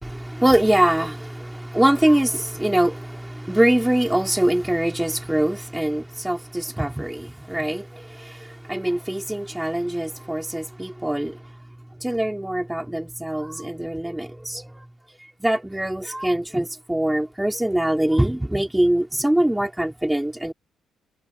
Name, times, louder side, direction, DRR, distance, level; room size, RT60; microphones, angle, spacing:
voice 1, 0.0-11.4 12.0-14.8 15.4-20.5, right 1 dB, 5° right, 4.0 m, -23 dB
cardioid pair, 90°, 0 cm